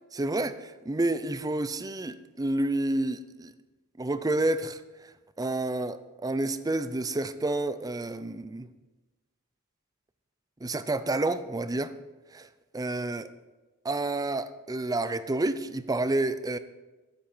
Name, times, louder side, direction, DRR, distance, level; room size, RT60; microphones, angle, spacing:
voice 1, 0.1-3.5 4.0-5.1 5.4-8.7 10.6-11.9 12.3-12.5 12.7-13.3 13.8-16.6, right 2 dB, 15° right, 0.5 m, -29 dB
14.0 x 10.5 x 4.4 m
head